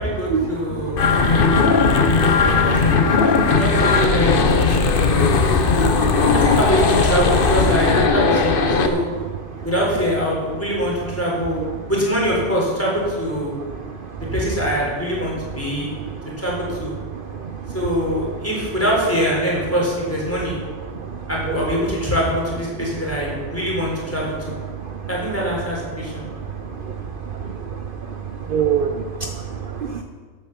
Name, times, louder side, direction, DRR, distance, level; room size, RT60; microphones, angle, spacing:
voice 1, 0.0-1.0 2.4-4.9 6.3-9.0 9.6-11.6 11.9-13.5 14.2-15.9 16.4-16.9 17.7-20.6 21.3-24.5 25.1-26.2, equal, 10° left, -4 dB, 4.0 m, -23 dB
sound 1, 1.0-8.9, left 4 dB, 50° left, 1.1 m, -17 dB
voice 2, 1.0-2.4 3.2-3.5 5.9-6.3 14.2-14.3 17.4-17.5 21.1-21.2 24.9-25.0 26.8-26.9 27.2-27.6 28.5-30.0, right 7 dB, 50° right, 5 dB, 0.9 m, -26 dB
11.5 x 8.3 x 7.0 m, 1.5 s
omnidirectional pair, 1.2 m